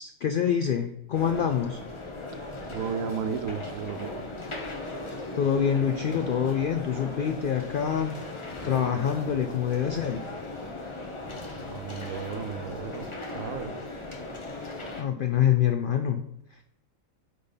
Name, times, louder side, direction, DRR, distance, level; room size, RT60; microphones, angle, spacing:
voice 1, 0.0-1.8 5.4-8.3 8.6-10.2 15.0-16.2, left 8 dB, 65° left, 7 dB, 0.5 m, -26 dB
sound 1, 1.1-15.0, left 2 dB, 25° left, 0.8 m, -38 dB
voice 2, 2.7-4.2 11.5-13.7, right 7 dB, 80° right, 9 dB, 1.1 m, -34 dB
8.6 x 3.7 x 4.0 m, 0.79 s
omnidirectional pair, 1.4 m